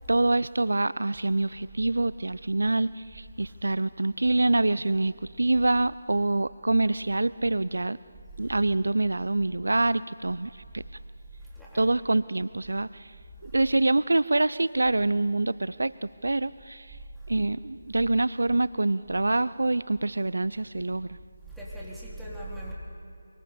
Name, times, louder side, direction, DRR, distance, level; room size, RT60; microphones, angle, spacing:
voice 1, 0.1-8.0 8.4-10.8 11.7-13.1 13.4-17.0 17.3-21.1, right 2 dB, 75° right, 18 dB, 0.5 m, -26 dB
voice 2, 11.4-11.9 15.1-15.2 17.2-17.3 21.5-22.7, right 1 dB, ahead, -8 dB, 3.9 m, -40 dB
25.5 x 24.0 x 6.9 m, 2.4 s
figure-of-eight pair, 155°, 0 cm